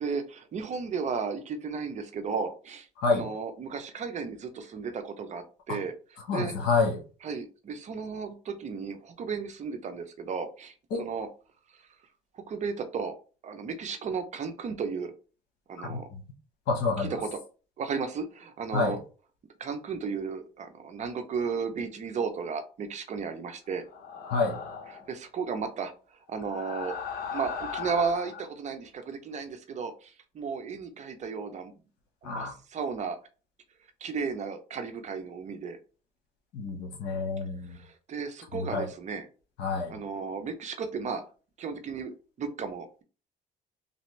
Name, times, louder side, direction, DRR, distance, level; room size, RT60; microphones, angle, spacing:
voice 1, 0.0-5.9 6.3-6.5 7.2-11.3 12.3-13.1 13.4-15.1 15.7-16.1 17.0-17.4 17.8-19.0 19.6-23.8 24.9-25.9 26.3-27.0 27.3-31.7 32.2-33.2 34.0-35.8 37.7-39.3 39.9-41.2 41.6-43.0, right 5 dB, 45° right, 0.7 m, -34 dB
voice 2, 3.0-3.3 5.7-5.8 6.3-7.0 10.9-11.0 15.8-16.2 16.7-17.2 18.7-19.0 24.2-24.6 32.2-32.5 36.5-37.8 38.5-38.9 39.6-40.0, left 4 dB, 85° left, 1.2 m, -28 dB
sound 1, 23.9-25.1 26.3-28.5, left 6 dB, 65° left, 0.9 m, -38 dB
3.3 x 2.7 x 3.1 m
cardioid pair, 110°, 17 cm